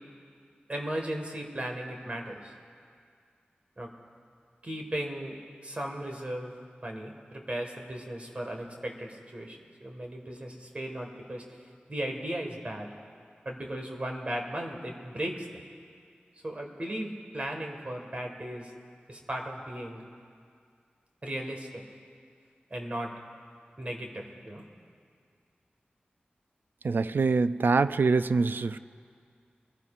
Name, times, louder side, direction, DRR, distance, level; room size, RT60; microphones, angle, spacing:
voice 1, 0.7-2.5 3.8-3.9 4.6-5.4 5.6-6.5 6.8-11.4 11.9-12.9 13.4-15.5 16.4-18.7 19.1-20.0 21.2-21.8 22.7-23.1 23.8-24.6, right 1 dB, 40° right, 2 dB, 1.7 m, -36 dB
voice 2, 26.8-28.8, right 4 dB, 75° right, 13 dB, 0.3 m, -24 dB
23.0 x 15.0 x 2.5 m, 2.2 s
wide cardioid pair, 85°, 4 cm